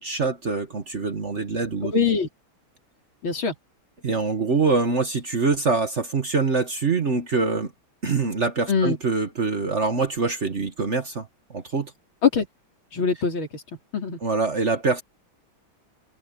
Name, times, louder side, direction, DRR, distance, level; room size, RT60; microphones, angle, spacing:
voice 1, 0.0-1.9 4.0-7.7 8.0-11.9 14.2-15.0, right 4 dB, 40° right, 1.5 m, -24 dB
voice 2, 1.9-2.3 3.2-3.5 8.7-9.0 12.2-12.5 12.9-13.6 13.9-14.2, left 5 dB, 75° left, 4.2 m, -22 dB
omnidirectional pair, 2.2 m